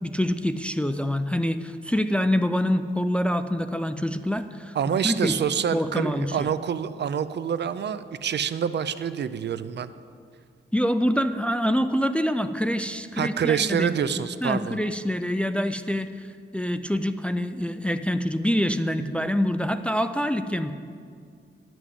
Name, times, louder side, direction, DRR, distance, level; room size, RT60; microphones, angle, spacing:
voice 1, 0.0-4.8 5.0-5.4 5.7-6.5 10.7-14.1 14.4-16.1 16.5-20.7, equal, 5° left, 10 dB, 0.3 m, -25 dB
voice 2, 4.7-9.9 13.2-14.8, right 8 dB, 60° right, 13 dB, 0.5 m, -27 dB
11.0 x 6.1 x 8.0 m, 2.2 s
wide cardioid pair, 140°, 20 cm